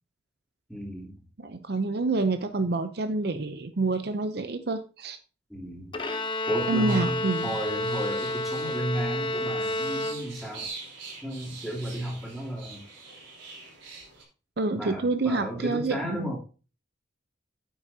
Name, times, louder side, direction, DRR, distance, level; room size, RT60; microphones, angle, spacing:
voice 1, 0.7-1.2 5.5-6.0 6.4-10.7 11.2-12.8 14.7-16.4, equal, ahead, -5 dB, 3.2 m, -33 dB
voice 2, 1.4-5.2 6.7-7.5 14.6-16.4, right 3 dB, 55° right, 9 dB, 0.6 m, -28 dB
Bowed string instrument, 5.9-10.6, left 1 dB, 25° left, 0.8 m, -30 dB
sound 1, 6.9-14.2, right 4 dB, 80° right, 4.2 m, -44 dB
9.6 x 8.8 x 2.8 m, 0.34 s
head